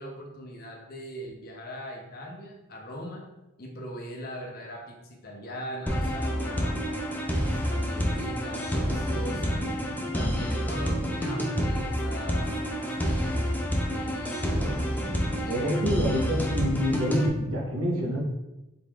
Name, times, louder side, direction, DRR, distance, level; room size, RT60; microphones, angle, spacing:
voice 1, 0.0-3.3 3.6-6.8 7.1-9.6 10.1-13.4 13.8-14.9 15.4-16.0, equal, 45° left, 0 dB, 0.8 m, -40 dB
sound 1, 5.9-17.3, equal, 10° left, 0.5 m, -28 dB
voice 2, 15.5-18.2, equal, 80° right, -1 dB, 1.0 m, -27 dB
3.9 x 3.6 x 3.5 m, 0.96 s
head